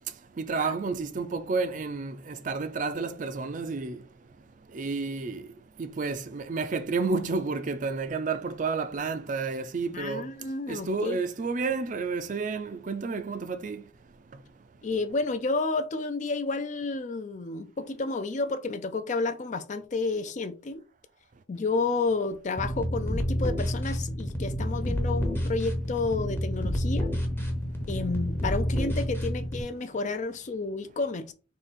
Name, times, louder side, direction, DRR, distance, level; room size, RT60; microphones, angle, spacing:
voice 1, 0.4-4.0 4.7-5.4 5.8-10.2 10.7-13.8, right 4 dB, 40° right, 0.4 m, -30 dB
voice 2, 9.9-11.2 14.8-20.8 21.5-27.1 27.9-31.3, left 3 dB, 40° left, 0.4 m, -31 dB
sound 1, 22.6-29.6, equal, 10° left, 0.7 m, -29 dB
3.7 x 2.9 x 4.2 m
head